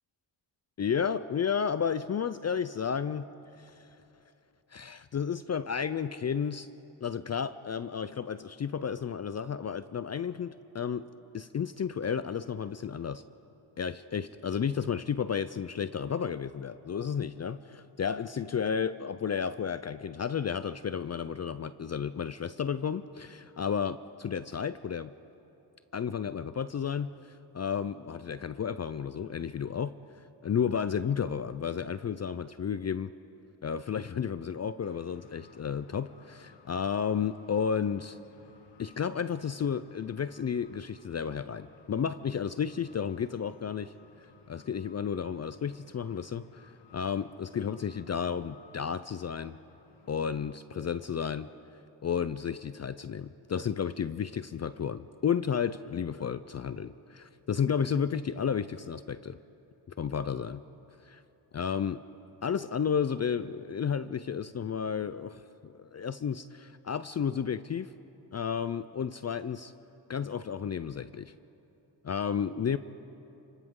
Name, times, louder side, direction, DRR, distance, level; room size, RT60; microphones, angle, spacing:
voice 1, 0.8-3.3 3.6-3.9 4.7-6.7 7.0-13.2 13.8-25.1 25.9-27.2 27.5-29.9 30.4-33.1 33.6-38.2 38.8-43.9 44.5-49.6 50.1-51.5 52.0-59.4 60.0-60.6 61.1-61.2 61.5-62.0 62.4-67.9 68.3-69.7 70.1-71.3 72.0-72.8, left 7 dB, 35° left, 13 dB, 0.5 m, -32 dB
sound 1, 34.8-50.5, left 5 dB, 60° left, 1.5 m, -59 dB
29.0 x 26.0 x 3.8 m, 2.9 s
cardioid pair, 105°, 47 cm